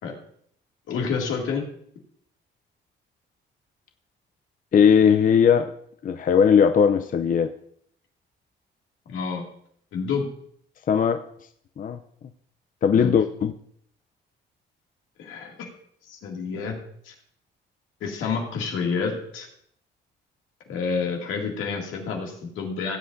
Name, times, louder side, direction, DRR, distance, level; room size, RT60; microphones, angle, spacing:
voice 1, 0.9-1.6 9.1-9.4 9.9-10.3 12.9-13.1 15.2-15.7 16.1-16.8 17.0-17.1 18.0-19.5 20.7-23.0, left 5 dB, 85° left, 0 dB, 2.3 m, -29 dB
voice 2, 4.7-5.7 6.0-7.5 10.9-11.3 11.8-12.0 12.8-13.5, left 7 dB, 45° left, 7 dB, 0.5 m, -18 dB
17.0 x 7.8 x 2.6 m, 0.66 s
cardioid pair, 90°, 20 cm